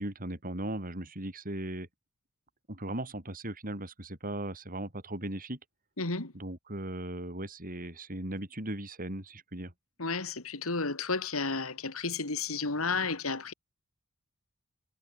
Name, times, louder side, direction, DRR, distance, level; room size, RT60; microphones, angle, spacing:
voice 1, 0.0-1.9 2.7-5.6 6.3-9.7, right 1 dB, 40° right, 6.3 m, -37 dB
voice 2, 6.0-6.3 10.0-13.5, left 4 dB, 80° left, 2.7 m, -32 dB
head